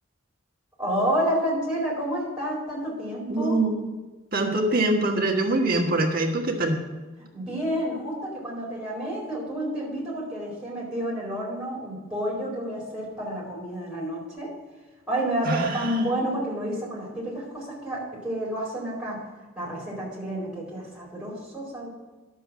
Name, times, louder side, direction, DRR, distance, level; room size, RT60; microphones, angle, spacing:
voice 1, 0.8-3.5 7.3-14.5 15.1-19.2 19.5-21.9, right 1 dB, 5° right, -6 dB, 4.3 m, -29 dB
voice 2, 3.3-3.9 4.3-6.8 15.4-16.0, right 2 dB, 45° right, 2 dB, 1.5 m, -24 dB
11.0 x 7.1 x 6.1 m, 1.2 s
head